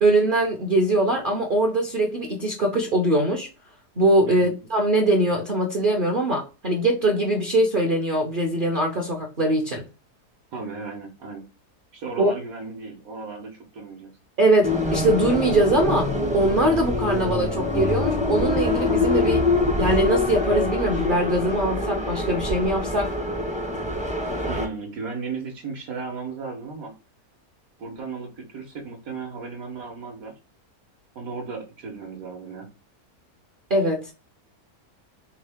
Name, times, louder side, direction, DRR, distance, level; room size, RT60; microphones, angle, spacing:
voice 1, 0.0-3.5 4.0-9.9 12.2-12.3 14.4-19.4 19.8-23.1 33.7-34.1, right 1 dB, 45° right, 0.7 m, -22 dB
voice 2, 10.5-11.5 11.9-14.1 24.5-26.9 27.8-30.3 31.1-32.7, right 4 dB, 65° right, 1.3 m, -35 dB
sound 1, 14.6-24.7, left 2 dB, 10° right, 0.5 m, -25 dB
3.6 x 3.5 x 3.4 m
omnidirectional pair, 1.7 m